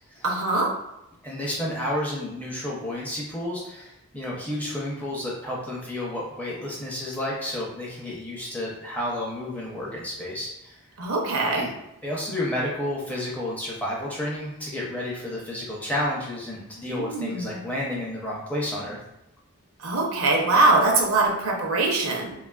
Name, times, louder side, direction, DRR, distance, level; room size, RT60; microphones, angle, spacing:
voice 1, 0.2-0.7 11.0-11.7 16.9-17.6 19.8-22.3, right 2 dB, 80° right, 0 dB, 0.6 m, -22 dB
voice 2, 1.2-10.8 11.6-11.7 12.0-19.0, left 1 dB, 5° left, -5 dB, 0.5 m, -31 dB
3.1 x 2.3 x 2.3 m, 0.87 s
head